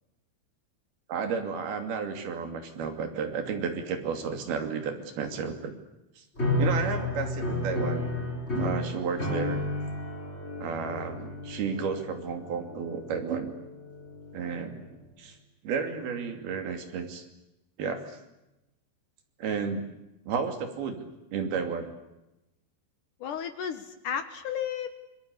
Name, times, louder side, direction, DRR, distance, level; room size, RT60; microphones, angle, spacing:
voice 1, 1.1-5.7 6.2-6.3 6.6-8.1 8.5-9.6 10.6-13.5 14.3-14.8 15.2-15.4 15.6-17.2 17.8-18.2 19.4-19.9 20.3-21.9, right 6 dB, 60° right, 6 dB, 4.3 m, -32 dB
sound 1, 6.4-14.7, left 2 dB, 15° left, 4.5 m, -32 dB
voice 2, 23.2-24.9, left 8 dB, 75° left, 9 dB, 1.9 m, -33 dB
27.5 x 21.5 x 8.2 m, 0.94 s
omnidirectional pair, 5.4 m